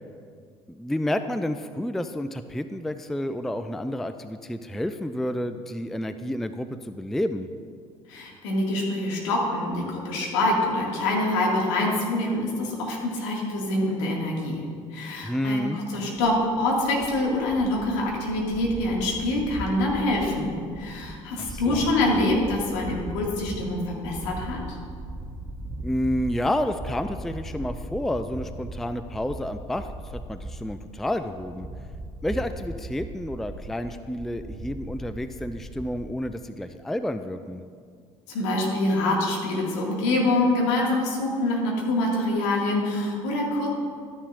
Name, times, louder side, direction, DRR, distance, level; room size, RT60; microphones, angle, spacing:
voice 1, 0.7-7.5 15.2-15.8 21.4-21.9 25.8-31.7 32.2-37.6, left 1 dB, ahead, 10 dB, 0.4 m, -30 dB
voice 2, 8.1-14.6 14.9-24.8 38.3-43.7, left 2 dB, 70° left, -2 dB, 2.1 m, -25 dB
sound 1, 16.3-36.0, right 1 dB, 25° right, 1.1 m, -39 dB
13.0 x 9.8 x 2.6 m, 2.1 s
figure-of-eight pair, 60°, 16 cm